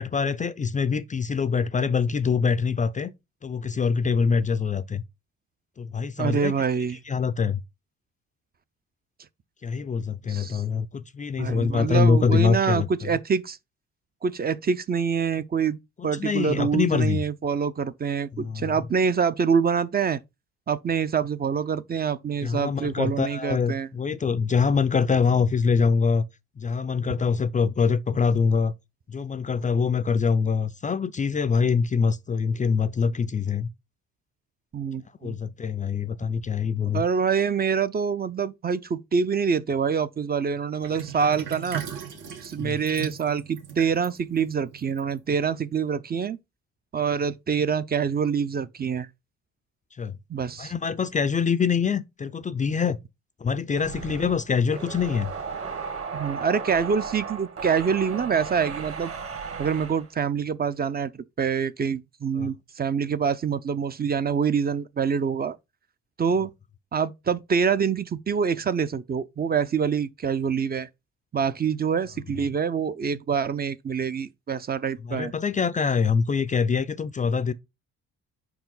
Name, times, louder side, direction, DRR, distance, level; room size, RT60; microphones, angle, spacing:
voice 1, 0.0-3.1 3.4-5.0 5.8-6.5 7.1-7.6 9.6-13.1 16.0-17.2 18.3-18.8 22.4-26.2 26.6-28.7 29.1-33.7 35.2-37.0 42.6-42.8 50.0-50.2 50.6-53.0 53.4-55.3 62.4-62.5 75.0-77.5, left 5 dB, 25° left, 0.4 m, -24 dB
voice 2, 6.2-7.0 10.3-10.6 11.4-13.6 14.2-20.2 20.7-23.9 34.7-35.4 36.9-41.8 42.4-46.4 46.9-49.1 50.3-50.7 56.1-59.1 59.6-65.6 66.2-66.5 66.9-70.9 71.3-75.3, right 6 dB, 30° right, 0.5 m, -26 dB
Sink (filling or washing), 40.8-45.6, right 9 dB, 80° right, 1.7 m, -38 dB
sound 1, 53.7-60.1, right 5 dB, 50° right, 1.7 m, -35 dB
5.2 x 4.7 x 3.9 m
cardioid pair, 90°, 31 cm